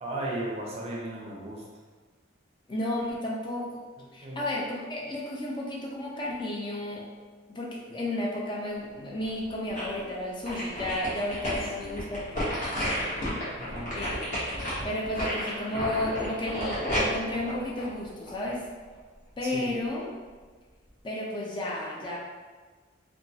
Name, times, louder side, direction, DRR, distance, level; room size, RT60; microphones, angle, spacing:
voice 1, 0.0-1.6 4.2-4.4 11.8-12.3 13.6-13.9 19.4-19.7, right 1 dB, 35° right, -3 dB, 0.5 m, -36 dB
voice 2, 2.7-3.8 4.1-7.1 7.5-12.2 13.9-18.6 19.4-20.1 21.0-22.2, left 1 dB, 25° left, -3 dB, 0.3 m, -33 dB
sound 1, 9.2-10.0 10.5-18.5 18.9-19.0, equal, 40° left, 1.0 m, -32 dB
2.9 x 2.2 x 2.6 m, 1.4 s
head